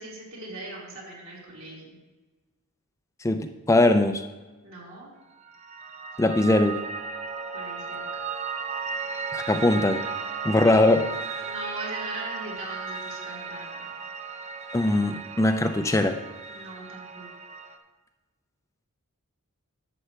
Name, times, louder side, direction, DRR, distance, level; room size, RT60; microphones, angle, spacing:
voice 1, 0.0-2.0 4.6-5.1 7.5-8.2 10.5-11.0 11.4-13.8 16.5-17.3, right 2 dB, 65° right, -5 dB, 3.1 m, -40 dB
voice 2, 3.2-4.2 6.2-6.8 9.3-10.0 10.4-11.0 14.7-16.2, left 2 dB, 15° left, 7 dB, 0.4 m, -21 dB
Piano, 5.4-17.8, right 5 dB, 30° right, 0.6 m, -35 dB
11.0 x 7.8 x 3.2 m, 1.2 s
head